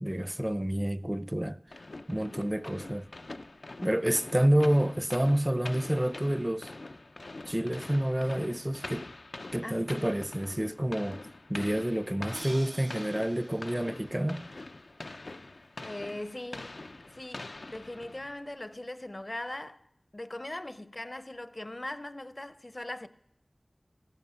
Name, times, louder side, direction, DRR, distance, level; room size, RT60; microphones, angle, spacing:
voice 1, 0.0-1.6 2.1-3.1 3.8-6.7 7.5-9.1 9.5-11.2 11.5-14.4, right 1 dB, 20° right, 0.6 m, -28 dB
sound 1, 1.7-18.5, left 2 dB, 85° left, 0.5 m, -44 dB
voice 2, 9.6-10.1 15.8-16.7 17.1-19.8 20.1-23.1, left 1 dB, 45° left, 0.6 m, -40 dB
Crash cymbal, 12.3-15.3, right 1 dB, 85° right, 4.4 m, -48 dB
15.5 x 13.0 x 5.6 m
wide cardioid pair, 45°, 0 cm